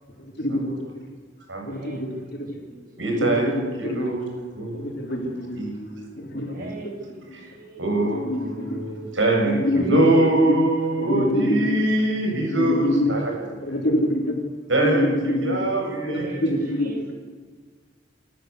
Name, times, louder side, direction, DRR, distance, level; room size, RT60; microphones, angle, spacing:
voice 1, 0.4-0.8 1.6-2.1 2.4-2.5 3.2-3.3 3.8-4.1 4.8-5.6 6.2-6.6 8.1-8.8 9.6-9.8 11.0-11.8 12.5-13.1 13.7-14.3 14.8-15.6 16.1-16.9, left 1 dB, 60° left, 2 dB, 3.8 m, -25 dB
voice 2, 1.7-2.8 6.4-8.0 16.1-17.1, right 2 dB, 50° right, 1 dB, 6.4 m, -42 dB
voice 3, 3.0-5.0 5.5-6.1 6.6-6.7 7.3-7.5 7.8-13.7 14.7-16.8, right 2 dB, 85° right, 1 dB, 7.2 m, -24 dB
27.0 x 14.0 x 8.2 m, 1.5 s
head